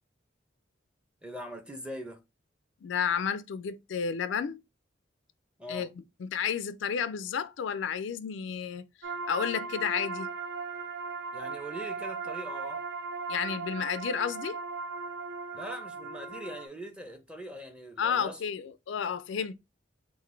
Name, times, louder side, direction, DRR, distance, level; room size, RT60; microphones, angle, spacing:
voice 1, 1.2-2.2 5.6-5.9 11.3-12.8 15.5-18.4, equal, 5° right, 0.7 m, -41 dB
voice 2, 2.8-4.6 5.7-10.3 13.3-14.6 18.0-19.5, left 7 dB, 75° left, 0.4 m, -32 dB
sound 1, 9.0-16.7, right 4 dB, 60° right, 0.6 m, -37 dB
3.9 x 2.5 x 4.4 m
head